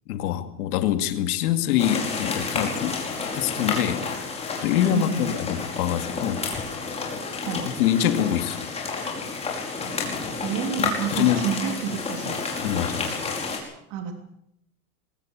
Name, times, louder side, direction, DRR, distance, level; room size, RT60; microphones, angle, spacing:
voice 1, 0.1-3.0 3.3-4.3 4.6-6.4 7.5-8.7 11.1-11.5 12.6-13.3, left 11 dB, 90° left, 8 dB, 2.4 m, -25 dB
sound 1, 1.8-13.6, left 4 dB, 15° left, 5.2 m, -30 dB
voice 2, 4.9-5.3 7.4-7.7 10.4-12.4 13.9-14.2, right 8 dB, 45° right, 5 dB, 3.3 m, -29 dB
21.5 x 18.0 x 7.3 m, 0.78 s
supercardioid pair, 165°, 44 cm